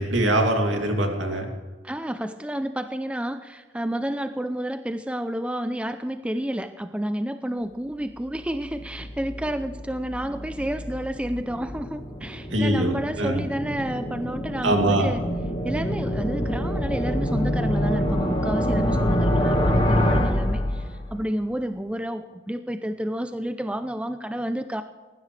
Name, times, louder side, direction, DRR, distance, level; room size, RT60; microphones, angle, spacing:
voice 1, 0.0-1.5 12.5-12.9 13.2-13.4 14.6-15.1, right 1 dB, 70° right, 2 dB, 2.7 m, -22 dB
voice 2, 1.8-15.2 15.6-24.8, equal, 5° right, 9 dB, 0.5 m, -30 dB
sound 1, 8.4-21.3, equal, 25° left, 1.7 m, -26 dB
19.5 x 15.0 x 3.4 m, 1.4 s
head